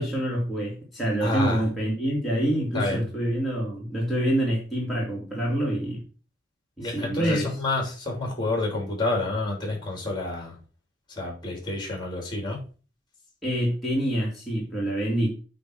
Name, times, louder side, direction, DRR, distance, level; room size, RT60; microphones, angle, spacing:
voice 1, 0.0-6.0 6.8-7.5 13.4-15.3, right 1 dB, ahead, -5 dB, 2.5 m, -26 dB
voice 2, 1.2-1.6 2.7-3.0 6.8-10.6 11.1-12.6, left 2 dB, 25° left, 1 dB, 3.1 m, -28 dB
8.4 x 4.0 x 6.2 m, 0.36 s
head